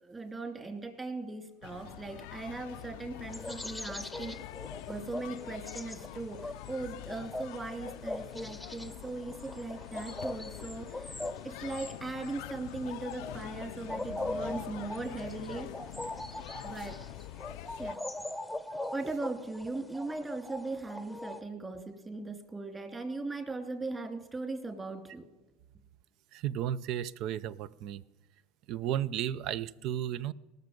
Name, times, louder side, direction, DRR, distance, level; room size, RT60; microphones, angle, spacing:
voice 1, 0.0-4.4 4.9-11.1 11.4-15.7 16.6-17.1 17.8-18.0 18.9-25.2, right 3 dB, 20° right, 2.9 m, -39 dB
sound 1, 1.6-18.0, left 16 dB, 75° left, 0.4 m, -45 dB
sound 2, 3.3-21.4, left 1 dB, 5° left, 0.9 m, -41 dB
voice 2, 26.3-28.0 28.7-30.3, right 11 dB, 60° right, 0.5 m, -34 dB
19.0 x 6.7 x 5.2 m
supercardioid pair, 90°, 0 cm